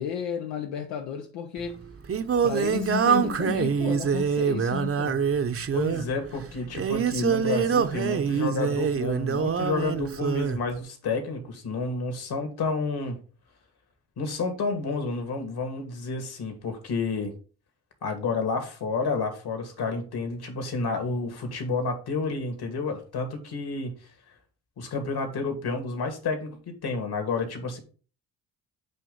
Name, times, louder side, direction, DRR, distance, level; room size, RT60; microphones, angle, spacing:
voice 1, 0.0-1.8 2.4-5.2, left 7 dB, 85° left, 1.0 m, -32 dB
Singing, 1.6-10.6, right 7 dB, 30° right, 0.8 m, -25 dB
voice 2, 5.7-13.2 14.2-17.3 18.0-23.9 24.8-27.8, left 3 dB, 60° left, 2.4 m, -30 dB
7.8 x 3.0 x 5.3 m
supercardioid pair, 70°, 43 cm